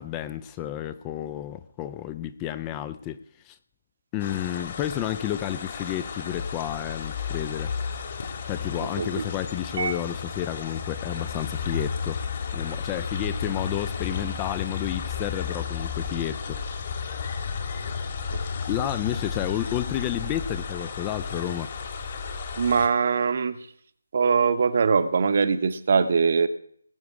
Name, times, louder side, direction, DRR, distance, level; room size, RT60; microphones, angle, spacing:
voice 1, 0.0-3.2 3.4-3.6 4.1-7.7 8.5-12.2 12.5-16.6 18.7-21.7, left 12 dB, 15° left, 13 dB, 0.4 m, -31 dB
sound 1, 4.2-22.9, left 5 dB, 35° left, 1.8 m, -33 dB
voice 2, 9.0-9.3 9.8-9.9 22.6-23.6 24.1-26.5, right 5 dB, 40° right, 13 dB, 0.8 m, -22 dB
19.5 x 8.0 x 4.7 m, 0.64 s
figure-of-eight pair, 150°, 0 cm